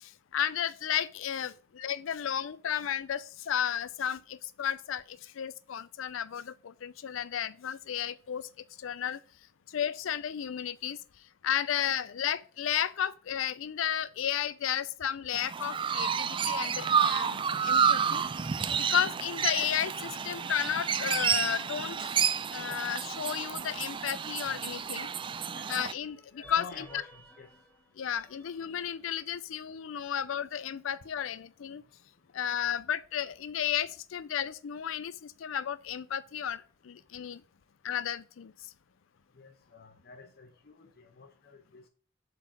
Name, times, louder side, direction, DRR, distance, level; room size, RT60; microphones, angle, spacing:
voice 1, 0.0-9.2 9.7-18.2 18.8-22.1 22.5-25.1 25.7-26.8 28.0-31.8 32.3-37.4 37.8-38.7, left 9 dB, 90° left, 0.4 m, -33 dB
Chirp tweet, 15.3-25.9, right 7 dB, 25° right, 0.3 m, -30 dB
sound 1, 24.4-25.5 26.0-29.4, equal, 10° left, 1.5 m, -56 dB
voice 2, 26.3-27.5 39.3-41.9, left 4 dB, 55° left, 1.0 m, -50 dB
7.7 x 4.2 x 6.2 m
head